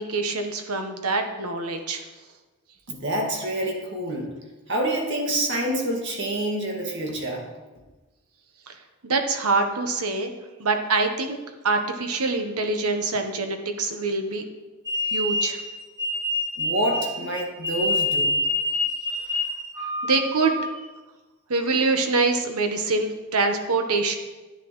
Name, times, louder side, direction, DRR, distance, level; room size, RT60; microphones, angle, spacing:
voice 1, 0.0-2.0 8.7-8.8 9.0-10.3 10.6-11.4 11.6-14.4 15.0-15.6 19.8-20.6 21.5-24.1, right 3 dB, 80° right, 5 dB, 1.1 m, -25 dB
voice 2, 2.9-4.3 4.7-7.5 16.6-18.4, right 1 dB, 55° right, 0 dB, 1.9 m, -27 dB
sound 1, 14.8-20.8, left 2 dB, 15° right, 1.8 m, -26 dB
11.0 x 9.4 x 3.1 m, 1.2 s
head